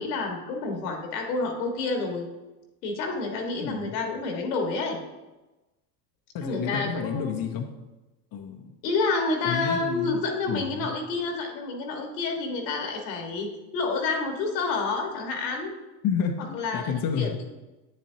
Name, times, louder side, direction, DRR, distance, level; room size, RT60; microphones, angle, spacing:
voice 1, 0.0-2.3 2.8-5.0 6.4-7.3 8.8-15.7 16.4-17.5, left 3 dB, 85° left, 2 dB, 1.7 m, -29 dB
voice 2, 3.6-3.9 6.3-7.7 8.3-8.7 9.4-10.2 10.5-10.9 16.0-17.3, left 7 dB, 45° left, 2 dB, 0.9 m, -30 dB
9.0 x 7.4 x 2.8 m, 1.1 s
hypercardioid pair, 85°, 48 cm